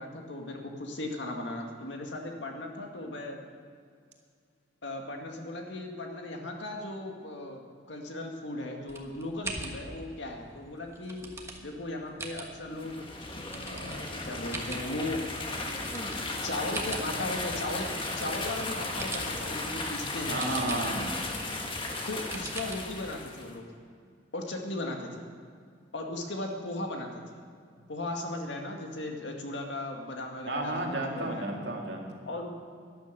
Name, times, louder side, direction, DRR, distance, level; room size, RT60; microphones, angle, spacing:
voice 1, 0.0-3.4 4.8-11.3 11.6-13.1 13.7-15.2 15.5-15.9 16.4-20.4 22.1-23.6 24.3-25.3 25.9-27.4 27.9-31.6 32.3-32.5, left 2 dB, 75° left, 2 dB, 1.9 m, -37 dB
sound 1, 8.9-23.2, right 2 dB, 15° right, 1.3 m, -44 dB
sound 2, 12.7-23.5, left 2 dB, 30° left, 1.5 m, -35 dB
voice 2, 20.3-21.1 30.5-32.1, right 1 dB, 70° right, 1 dB, 2.2 m, -32 dB
12.5 x 11.5 x 6.8 m, 2.2 s
head